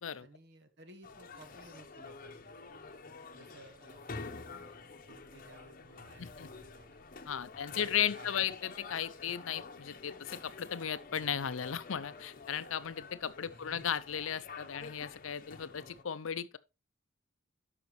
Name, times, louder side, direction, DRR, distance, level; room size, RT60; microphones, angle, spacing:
voice 1, 0.2-2.5 3.3-7.1 7.5-8.5 13.5-13.9, right 1 dB, 60° right, 1.5 m, -57 dB
sound 1, 1.0-16.0, left 4 dB, 45° left, 0.9 m, -49 dB
voice 2, 6.2-6.5 7.3-16.6, left 8 dB, 90° left, 0.6 m, -36 dB
12.0 x 5.8 x 3.1 m
head